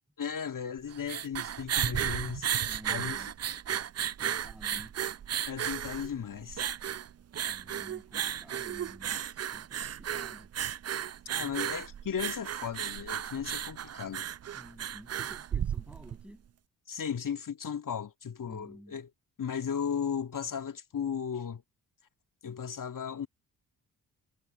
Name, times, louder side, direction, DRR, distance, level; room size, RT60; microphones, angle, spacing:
voice 1, 0.2-2.5 2.9-3.3 5.5-6.6 11.3-14.3 16.9-19.1 19.4-21.6 22.4-23.3, left 7 dB, 40° left, 2.2 m, -36 dB
sound 1, 0.8-16.2, right 9 dB, 35° right, 0.7 m, -34 dB
voice 2, 2.6-3.3 4.0-4.9 7.4-10.5 11.3-11.6 14.5-16.4 18.5-19.0, equal, 5° right, 7.1 m, -52 dB
figure-of-eight pair, 40°, 47 cm